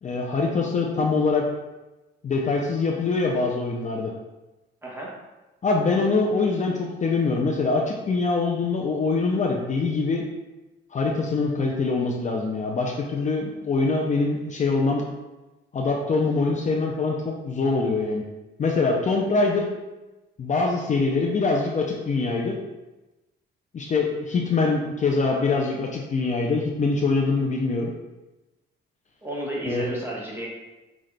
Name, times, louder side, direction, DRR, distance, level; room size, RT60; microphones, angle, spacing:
voice 1, 0.0-1.4 2.2-4.1 5.6-10.2 10.9-15.0 15.7-18.2 18.6-19.7 20.4-22.6 23.7-27.9 29.7-29.9, left 3 dB, 40° left, -1 dB, 0.6 m, -24 dB
voice 2, 4.8-5.1 29.2-30.5, right 1 dB, 10° right, -4 dB, 1.3 m, -31 dB
5.7 x 2.4 x 3.3 m, 1.1 s
cardioid pair, 90°, 20 cm